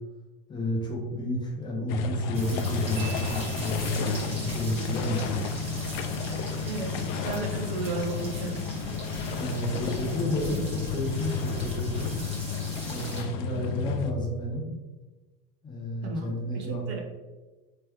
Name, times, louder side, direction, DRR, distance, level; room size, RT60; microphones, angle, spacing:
voice 1, 0.5-5.4 9.4-12.1 12.9-14.7 15.6-17.0, equal, 15° left, -1 dB, 0.6 m, -31 dB
sound 1, 1.9-14.1, left 5 dB, 80° left, 0.5 m, -32 dB
sound 2, 2.3-13.2, equal, 20° right, 1.2 m, -41 dB
Marimba xylophone, 3.0-4.4, right 11 dB, 65° right, 0.8 m, -45 dB
voice 2, 6.6-8.6 16.0-17.0, right 3 dB, 40° right, 2 dB, 0.4 m, -34 dB
3.3 x 3.2 x 3.2 m, 1.2 s
cardioid pair, 165°, 30 cm